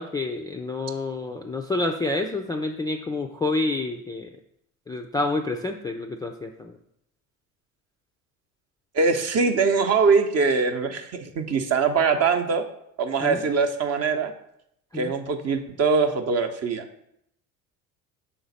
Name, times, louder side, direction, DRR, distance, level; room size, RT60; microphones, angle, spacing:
voice 1, 0.0-4.3 4.9-6.7 13.2-13.4 14.9-15.1, left 2 dB, 10° left, 2 dB, 0.3 m, -28 dB
voice 2, 8.9-12.6 13.0-14.3 14.9-17.1, right 5 dB, 40° right, 6 dB, 0.8 m, -22 dB
6.0 x 3.9 x 4.1 m, 0.75 s
hypercardioid pair, 65°, 41 cm